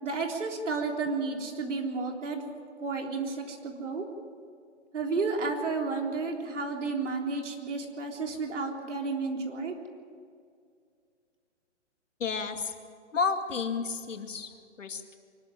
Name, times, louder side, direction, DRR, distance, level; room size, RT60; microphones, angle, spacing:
voice 1, 0.0-2.4 2.8-4.0 4.9-9.8, right 4 dB, 75° right, 2 dB, 3.8 m, -32 dB
voice 2, 12.2-12.7 13.1-14.5 14.8-15.1, left 5 dB, 90° left, 6 dB, 2.3 m, -31 dB
24.0 x 12.5 x 9.1 m, 2.2 s
hypercardioid pair, 165°, 37 cm